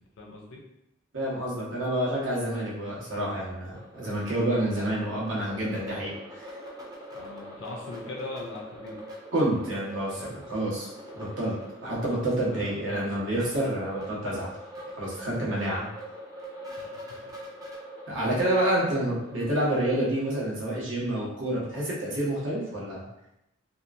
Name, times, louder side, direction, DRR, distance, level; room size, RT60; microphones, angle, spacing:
voice 1, 0.2-0.6 7.1-9.0 12.5-13.1 15.3-15.5 16.8-16.9, left 2 dB, 65° left, -2 dB, 0.5 m, -40 dB
voice 2, 1.1-6.4 9.3-10.9 11.1-11.6 11.8-14.5 14.9-15.9 18.1-23.0, right 1 dB, 80° right, -6 dB, 1.0 m, -28 dB
sound 1, 3.7-20.4, equal, 20° right, 0.4 m, -44 dB
2.8 x 2.4 x 2.4 m, 0.86 s
head